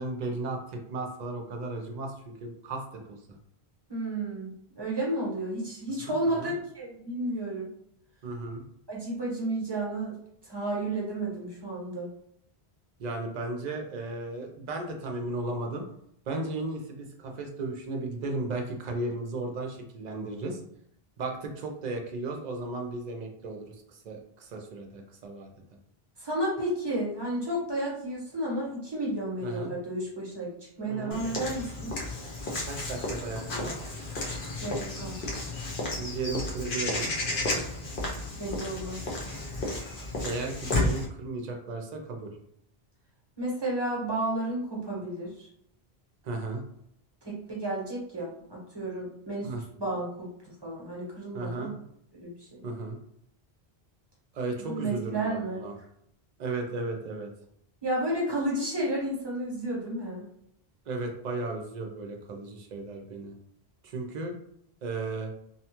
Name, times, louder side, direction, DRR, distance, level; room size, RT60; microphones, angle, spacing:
voice 1, 0.0-3.4 6.0-6.5 8.2-8.6 13.0-15.8 16.3-20.6 21.2-25.5 29.4-29.7 30.8-31.2 32.6-33.8 36.0-37.1 40.2-42.3 46.2-46.6 49.4-49.6 51.3-51.7 52.6-53.0 54.3-55.8 56.4-57.3 60.9-63.3 63.8-64.3 64.8-65.3, right 2 dB, 50° right, 2 dB, 0.6 m, -35 dB
voice 2, 3.9-7.7 8.9-10.2 10.4-12.1 26.2-30.5 30.8-31.9 34.6-35.2 38.3-39.2 43.4-45.5 47.3-49.5 49.8-50.3 50.6-51.7 52.1-52.6 54.7-55.6 57.8-60.2, right 1 dB, 25° right, -4 dB, 0.9 m, -32 dB
Walk footsteps / Bird vocalization bird call bird song, 31.1-41.1, left 2 dB, 60° left, 0.8 m, -32 dB
2.8 x 2.2 x 2.9 m, 0.74 s
omnidirectional pair, 1.0 m